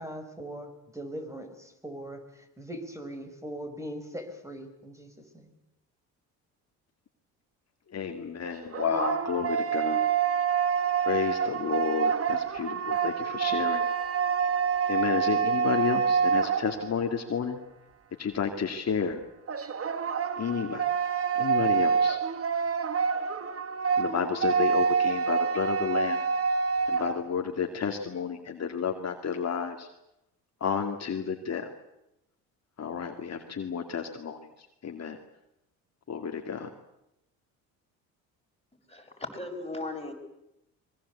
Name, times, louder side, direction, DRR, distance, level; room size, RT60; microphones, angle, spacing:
voice 1, 0.0-5.5, equal, 10° right, 6 dB, 5.2 m, -40 dB
voice 2, 7.9-10.1 11.0-13.8 14.9-17.6 18.2-19.2 20.4-20.8 21.3-22.2 24.0-26.2 26.9-29.9 30.6-31.7 32.8-34.5 34.8-35.2 36.1-36.7, left 6 dB, 40° left, 4 dB, 2.4 m, -31 dB
sound 1, 8.5-17.2 19.5-27.2, right 6 dB, 35° right, 1.8 m, -27 dB
voice 3, 38.9-40.1, left 2 dB, 15° left, 2 dB, 6.4 m, -37 dB
24.0 x 21.5 x 8.4 m, 0.86 s
supercardioid pair, 75°, 39 cm